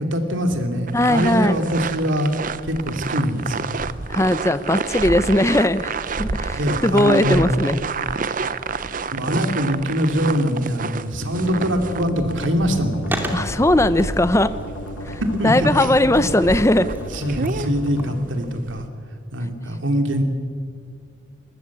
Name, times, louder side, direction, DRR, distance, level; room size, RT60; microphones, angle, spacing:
voice 1, 0.0-2.3 2.7-3.7 6.5-7.6 9.1-13.2 15.4-15.7 16.1-16.2 17.1-18.9 19.3-20.2, equal, 75° right, 5 dB, 2.8 m, -23 dB
voice 2, 0.9-1.6 4.1-7.8 13.3-14.5 15.0-16.9, left 1 dB, 15° left, 13 dB, 0.7 m, -19 dB
sound 1, 0.9-18.9, right 4 dB, 45° right, 0.7 m, -30 dB
sound 2, 11.3-18.2, left 1 dB, 90° left, 2.0 m, -34 dB
Skateboard, 13.1-18.6, right 1 dB, 10° right, 2.5 m, -36 dB
21.5 x 20.5 x 8.5 m, 2.2 s
head